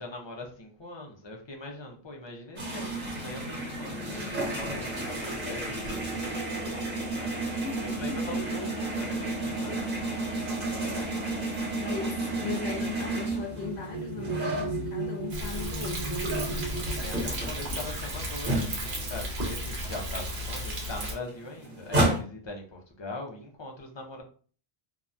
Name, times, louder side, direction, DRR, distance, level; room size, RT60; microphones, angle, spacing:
voice 1, 0.0-7.3 7.7-11.2 11.9-12.1 16.5-24.2, left 2 dB, 35° left, 0.5 m, -42 dB
sound 1, 2.6-15.4 15.8-19.2 19.5-19.6 19.8-22.2, right 2 dB, 55° right, 1.3 m, -32 dB
sound 2, 11.6-19.7 20.6-20.8 21.1-21.7, right 3 dB, 40° right, 0.8 m, -38 dB
voice 2, 11.8-16.6, left 6 dB, 85° left, 0.8 m, -38 dB
Thunder, 15.3-21.1, equal, 85° right, 1.1 m, -34 dB
2.7 x 2.2 x 2.5 m
omnidirectional pair, 1.0 m